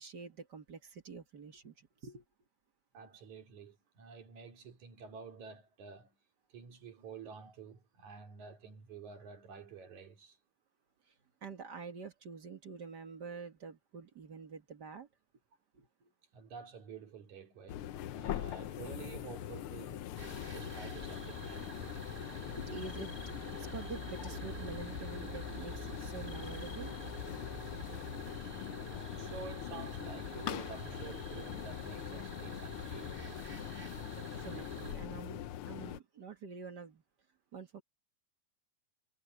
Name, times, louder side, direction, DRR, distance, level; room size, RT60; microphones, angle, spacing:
voice 1, 0.0-2.2 11.1-11.2 11.4-15.1 15.7-16.1 22.6-23.1 23.5-27.0 27.3-27.5 34.1-37.0 37.5-37.8, right 5 dB, 40° right, 1.9 m, -47 dB
voice 2, 2.9-6.2 6.5-10.4 16.3-20.2 20.5-21.9 28.6-33.2 34.2-34.5, right 5 dB, 75° right, 4.1 m, -50 dB
sound 1, 17.7-36.0, left 12 dB, 85° left, 1.2 m, -42 dB
sound 2, 20.2-34.9, right 2 dB, 20° right, 4.5 m, -47 dB
omnidirectional pair, 3.4 m